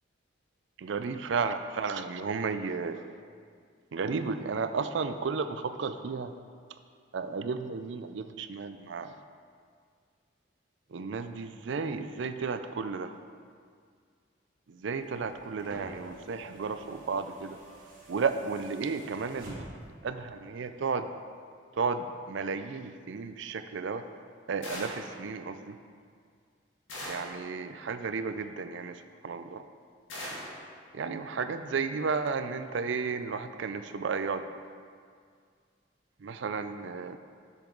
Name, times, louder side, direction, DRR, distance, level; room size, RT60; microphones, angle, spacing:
voice 1, 0.8-3.1 3.9-6.3 7.1-9.2 10.9-13.1 14.7-17.6 18.1-19.7 20.0-21.1 21.7-24.1 24.5-25.8 27.0-29.7 30.9-34.5 36.2-37.2, right 5 dB, 70° right, 10 dB, 0.4 m, -33 dB
sound 1, 14.9-20.0 21.2-21.3, right 1 dB, 45° right, 1.7 m, -48 dB
sound 2, 24.6-25.2 26.9-27.4 30.1-30.6, left 1 dB, 85° left, 1.9 m, -39 dB
7.4 x 7.2 x 3.9 m, 2.1 s
head